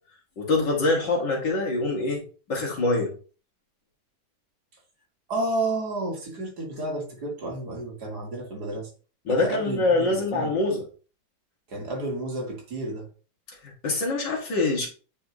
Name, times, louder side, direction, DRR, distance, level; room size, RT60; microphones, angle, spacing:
voice 1, 0.4-3.1 9.3-10.8 13.6-14.9, left 2 dB, 65° left, -1 dB, 2.6 m, -25 dB
voice 2, 5.3-8.9 9.3-10.5 11.7-13.1, right 2 dB, 55° right, 0 dB, 2.4 m, -31 dB
8.8 x 4.7 x 3.1 m, 0.37 s
omnidirectional pair, 2.1 m